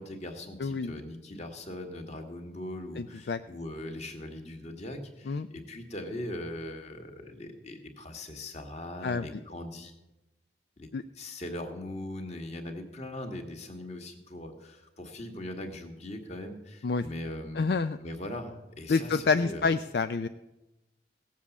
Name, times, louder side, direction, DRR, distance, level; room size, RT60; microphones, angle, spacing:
voice 1, 0.0-9.9 10.8-17.6 18.0-19.7, left 1 dB, 35° left, 4 dB, 1.6 m, -40 dB
voice 2, 0.6-0.9 3.0-3.4 5.3-5.5 9.0-9.3 10.9-11.0 16.8-17.1 17.6-18.0 18.9-20.3, left 4 dB, 60° left, 10 dB, 0.4 m, -28 dB
17.0 x 7.4 x 7.2 m, 0.99 s
head